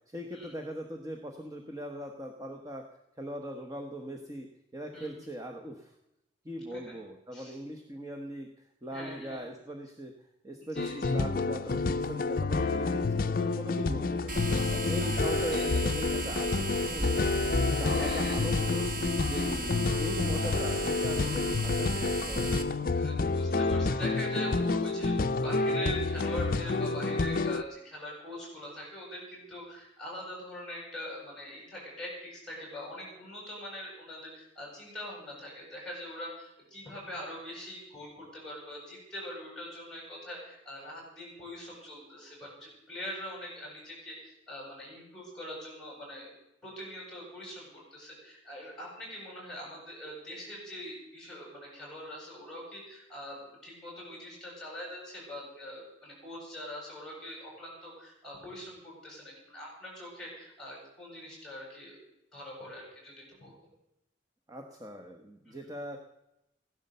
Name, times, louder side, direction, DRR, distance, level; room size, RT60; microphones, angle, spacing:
voice 1, 0.1-2.8 3.2-4.5 4.7-5.9 6.4-8.5 8.8-10.1 10.4-14.3 14.9-17.4 17.8-18.8 19.2-22.9 64.5-66.0, equal, 20° right, 3 dB, 1.2 m, -40 dB
voice 2, 4.9-5.3 6.7-6.9 7.3-7.6 8.9-9.4 10.6-11.1 14.6-15.2 15.5-15.8 17.8-18.4 19.3-19.5 22.9-46.4 46.6-62.0 62.3-63.5 65.5-65.7, left 1 dB, 5° left, -2 dB, 7.9 m, -43 dB
sound 1, 10.8-27.6, left 3 dB, 45° left, 0.5 m, -29 dB
sound 2, 14.3-22.6, right 2 dB, 45° right, 1.7 m, -36 dB
16.0 x 12.0 x 6.8 m, 0.86 s
head